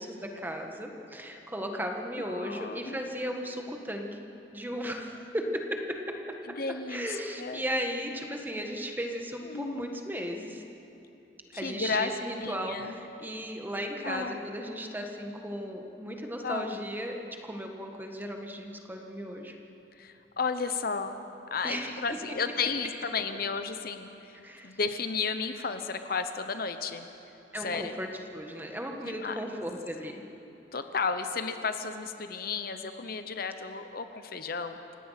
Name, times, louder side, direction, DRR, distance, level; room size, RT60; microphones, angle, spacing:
voice 1, 0.0-4.2 4.5-6.2 6.9-10.6 11.5-19.5 21.6-22.0 24.4-24.8 27.5-28.1 28.3-30.2, equal, 10° right, 3 dB, 1.7 m, -36 dB
voice 2, 2.2-3.0 6.5-7.6 9.4-9.9 11.5-12.1 12.4-12.9 14.0-14.4 16.4-16.7 20.0-21.2 21.5-24.4 24.6-27.1 27.6-28.0 29.0-29.4 30.7-34.8, left 5 dB, 55° left, 8 dB, 0.9 m, -33 dB
28.5 x 17.0 x 5.9 m, 2.9 s
head